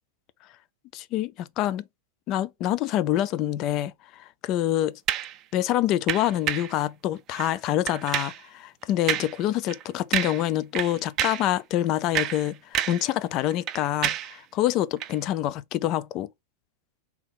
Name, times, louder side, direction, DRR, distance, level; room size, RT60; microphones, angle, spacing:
voice 1, 0.9-1.8 2.3-4.9 5.5-12.6 12.9-16.3, left 13 dB, 40° left, 0.3 m, -26 dB
sound 1, 5.1-5.4 6.1-6.8 7.3-7.5 7.9-8.4 9.1-9.4 9.7-9.8 10.1-10.5 10.8-11.5 12.0-13.1 13.4-14.4 15.0-15.1, right 11 dB, 35° right, 0.4 m, -29 dB
3.5 x 2.9 x 3.8 m
figure-of-eight pair, 90°, 0 cm